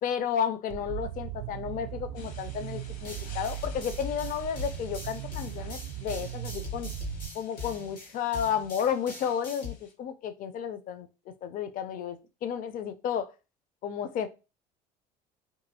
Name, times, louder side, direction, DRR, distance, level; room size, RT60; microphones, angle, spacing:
voice 1, 0.0-6.9 7.3-11.1 11.4-13.3 13.8-14.3, left 8 dB, 40° left, 0.4 m, -32 dB
sound 1, 0.7-7.3, right 13 dB, 65° right, 0.4 m, -38 dB
sound 2, 2.1-9.9, left 5 dB, 65° left, 0.9 m, -54 dB
sound 3, 3.1-9.7, left 5 dB, 90° left, 1.2 m, -42 dB
2.8 x 2.7 x 2.6 m
hypercardioid pair, 65°, 21 cm